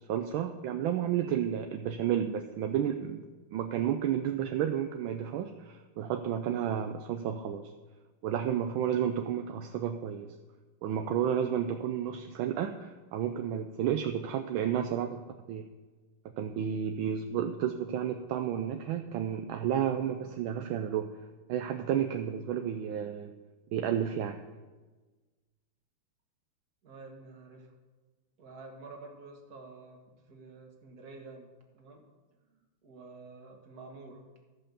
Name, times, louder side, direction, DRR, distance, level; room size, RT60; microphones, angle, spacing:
voice 1, 0.0-3.2 3.5-7.7 8.2-10.3 10.8-15.2 15.5-15.7 16.4-21.1 21.5-23.3 23.7-24.4, right 9 dB, 75° right, 6 dB, 1.3 m, -31 dB
voice 2, 26.8-27.7 28.4-32.0 32.5-34.3, right 3 dB, 45° right, 1 dB, 1.9 m, -49 dB
13.5 x 5.5 x 6.8 m, 1.3 s
omnidirectional pair, 2.4 m